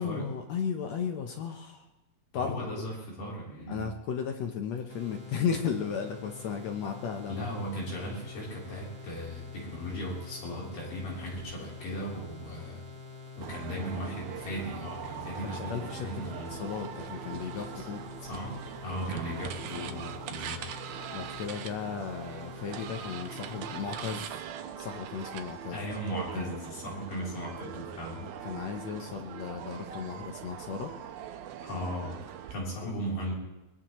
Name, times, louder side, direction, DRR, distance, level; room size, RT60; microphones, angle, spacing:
voice 1, 0.0-1.9 2.3-2.7 3.7-7.4 15.4-16.2 16.5-18.1 19.6-20.0 21.1-24.3 24.8-25.9 26.3-26.5 28.2-30.9 31.7-31.8 32.8-32.9, left 7 dB, 80° left, 5 dB, 1.5 m, -35 dB
voice 2, 2.3-3.9 7.3-12.8 13.4-16.5 17.8-17.9 18.3-20.7 25.7-28.3 31.6-32.2 32.5-33.3, equal, 65° left, -5 dB, 5.2 m, -37 dB
sound 1, 4.9-24.0, left 4 dB, 30° right, 2.2 m, -47 dB
sound 2, 13.4-32.5, right 9 dB, 85° right, 2.8 m, -42 dB
22.0 x 21.5 x 3.1 m, 1.0 s
omnidirectional pair, 4.3 m